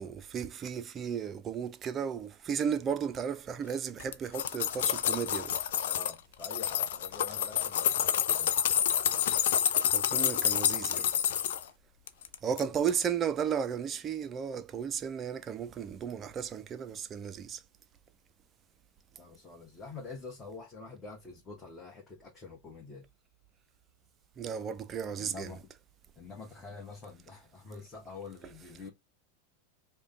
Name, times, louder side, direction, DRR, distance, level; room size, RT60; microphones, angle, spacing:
voice 1, 0.0-5.5 9.9-11.1 12.4-17.6 24.4-25.5, right 7 dB, 25° right, 0.5 m, -34 dB
sound 1, 4.0-6.1 6.4-11.6 12.1-12.6 12.9-13.0, left 10 dB, 55° left, 0.5 m, -28 dB
voice 2, 5.7-8.5 19.2-23.0 25.2-25.7 26.1-28.9, left 4 dB, 15° left, 1.4 m, -46 dB
5.1 x 2.3 x 3.5 m
figure-of-eight pair, 90°, 0 cm